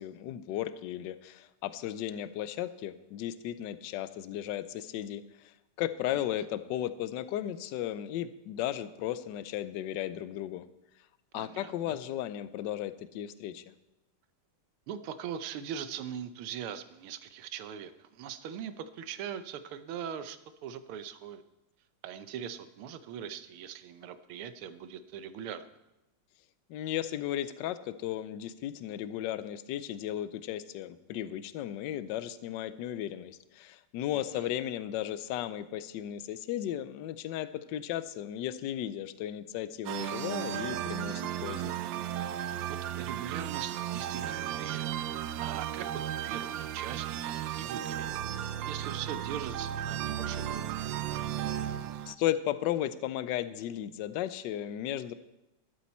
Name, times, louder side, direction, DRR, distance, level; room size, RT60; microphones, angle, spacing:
voice 1, 0.0-10.7 11.3-13.6 26.7-41.7 52.1-55.1, left 12 dB, 75° left, 14 dB, 1.1 m, -35 dB
voice 2, 11.3-12.0 14.9-21.4 22.0-25.7 34.1-34.5 42.7-44.9 45.4-45.9 46.2-48.1 48.3-50.6, right 8 dB, 90° right, 12 dB, 1.6 m, -41 dB
sound 1, 39.9-52.2, right 11 dB, 75° right, 1.1 m, -35 dB
12.5 x 11.5 x 4.3 m, 0.94 s
omnidirectional pair, 2.3 m